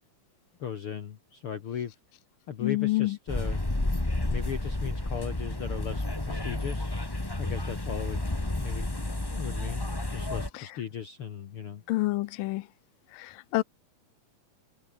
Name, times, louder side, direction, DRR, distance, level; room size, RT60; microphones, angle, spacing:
voice 1, 0.6-1.9 2.5-3.6 4.3-6.9 7.4-11.8, left 8 dB, 50° left, 1.9 m, -38 dB
voice 2, 2.6-3.2 10.5-10.8 11.9-12.6 13.2-13.6, left 19 dB, 90° left, 2.3 m, -28 dB
sound 1, 3.3-10.5, left 2 dB, 15° left, 0.9 m, -31 dB
omnidirectional pair, 3.9 m